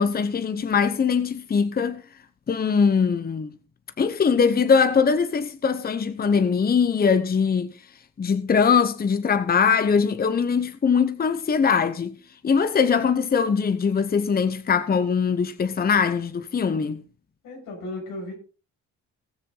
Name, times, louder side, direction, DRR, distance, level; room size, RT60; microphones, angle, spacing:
voice 1, 0.0-2.0 2.5-3.6 4.0-7.8 8.2-12.2 12.4-17.0, left 6 dB, 30° left, 0.9 m, -21 dB
voice 2, 17.4-18.3, left 2 dB, 90° left, 6.8 m, -35 dB
19.0 x 6.7 x 3.9 m
cardioid pair, 90°, 30 cm